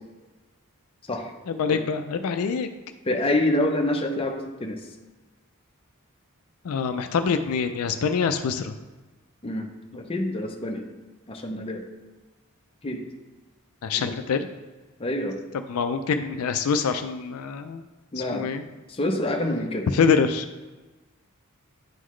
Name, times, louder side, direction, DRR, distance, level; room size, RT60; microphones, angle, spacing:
voice 1, 1.5-2.7 6.6-8.7 13.8-14.5 15.7-17.8 18.2-18.6 19.9-20.5, left 5 dB, 75° left, 7 dB, 0.4 m, -25 dB
voice 2, 3.1-4.8 9.4-10.8 11.3-11.8 12.8-13.0 13.9-14.1 15.0-15.4 18.1-18.5 18.9-19.9, left 1 dB, 25° left, 3 dB, 0.7 m, -27 dB
9.1 x 3.9 x 3.1 m, 1.2 s
head